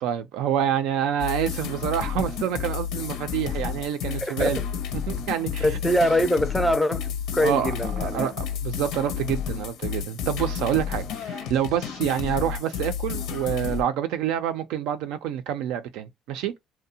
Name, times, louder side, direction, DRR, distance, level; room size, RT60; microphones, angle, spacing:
voice 1, 0.0-4.6 5.1-5.9 7.4-16.5, right 10 dB, 85° right, 0.4 m, -27 dB
sound 1, 1.2-13.8, left 8 dB, 80° left, 0.6 m, -31 dB
voice 2, 4.1-4.7 5.6-7.1 7.3-8.3, equal, 5° left, 0.4 m, -23 dB
2.7 x 2.0 x 2.7 m
cardioid pair, 120°, 0 cm